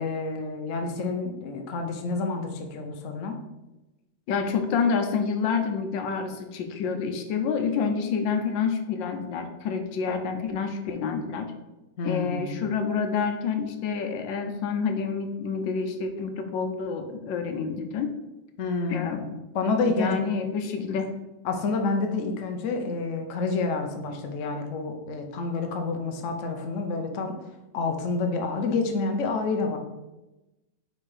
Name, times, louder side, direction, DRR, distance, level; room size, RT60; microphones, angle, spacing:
voice 1, 0.0-3.4 12.0-12.6 18.6-19.2 19.5-20.2 20.8-20.9 21.4-27.4 27.7-29.8, left 3 dB, 60° left, 4 dB, 0.8 m, -28 dB
voice 2, 4.3-11.5 12.0-18.1 18.9-19.3 19.9-21.2, left 5 dB, 80° left, 6 dB, 1.4 m, -28 dB
4.8 x 4.4 x 4.9 m, 1.0 s
omnidirectional pair, 2.1 m